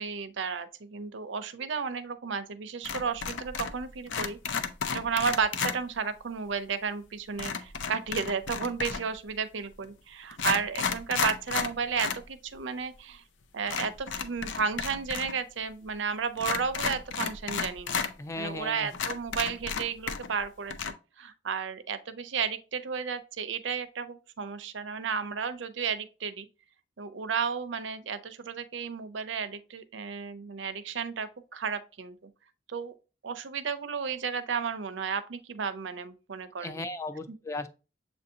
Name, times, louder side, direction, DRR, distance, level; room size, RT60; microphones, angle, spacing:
voice 1, 0.0-4.4 4.9-13.2 13.5-18.0 18.4-26.5 27.0-32.2 32.7-32.9 33.2-36.8 37.3-37.4, right 6 dB, 75° right, 0.6 m, -33 dB
sound 1, 2.8-3.8 4.1-5.8 7.4-9.1 9.8-9.9 10.3-12.2 12.5-12.6 13.7-15.3 15.6-15.7 16.4-18.1 18.6-18.7 18.9-20.4 20.7-20.9, left 6 dB, 80° left, 0.5 m, -32 dB
voice 2, 18.2-19.0 36.6-37.7, left 2 dB, 15° left, 0.4 m, -36 dB
7.2 x 2.6 x 2.7 m
head